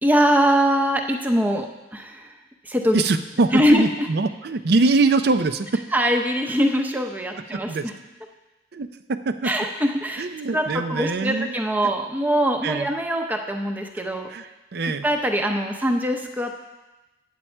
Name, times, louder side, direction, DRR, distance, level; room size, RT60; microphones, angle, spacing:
voice 1, 0.0-2.3 2.6-3.0 3.5-4.1 5.9-7.9 9.4-10.2 10.5-14.3 15.0-16.5, equal, 10° right, 3 dB, 0.6 m, -22 dB
voice 2, 2.9-5.8 7.5-7.9 8.7-9.5 10.2-11.5 12.6-12.9 14.3-15.1, right 3 dB, 55° right, 10 dB, 0.5 m, -23 dB
8.7 x 8.2 x 4.4 m, 1.1 s
head